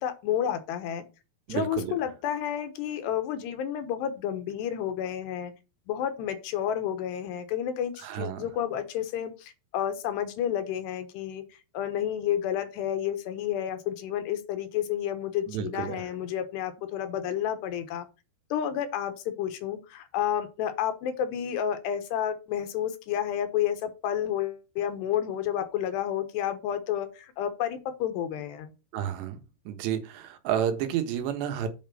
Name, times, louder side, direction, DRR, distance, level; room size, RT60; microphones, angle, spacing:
voice 1, 0.0-1.0 1.5-5.5 5.9-11.4 11.7-18.1 18.5-28.7, left 10 dB, 80° left, 10 dB, 3.3 m, -30 dB
voice 2, 1.5-1.9 8.0-8.5 15.5-16.1 28.9-29.4 29.7-31.7, right 9 dB, 80° right, 8 dB, 3.4 m, -30 dB
8.7 x 5.3 x 5.6 m, 0.29 s
omnidirectional pair, 4.9 m